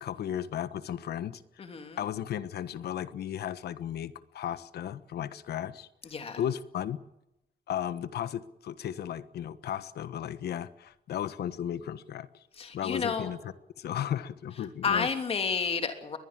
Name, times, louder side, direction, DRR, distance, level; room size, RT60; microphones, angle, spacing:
voice 1, 0.0-1.4 2.0-5.9 6.4-7.0 7.7-12.3 12.7-15.1, left 10 dB, 85° left, 14 dB, 1.3 m, -35 dB
voice 2, 1.6-2.0 6.1-6.4 12.6-13.3 14.8-16.2, left 5 dB, 35° left, 6 dB, 3.0 m, -30 dB
22.5 x 20.5 x 7.6 m, 0.88 s
wide cardioid pair, 175°, 16 cm